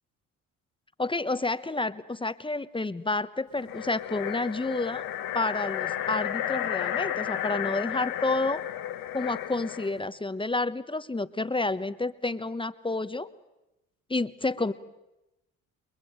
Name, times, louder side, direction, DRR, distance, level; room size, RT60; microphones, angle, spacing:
voice 1, 1.0-5.0 5.3-8.6 9.1-13.3 14.1-14.7, left 2 dB, 15° left, 12 dB, 1.1 m, -30 dB
sound 1, 3.6-10.0, left 11 dB, 80° left, 1.9 m, -33 dB
29.0 x 22.0 x 8.9 m, 0.96 s
cardioid pair, 85°, 33 cm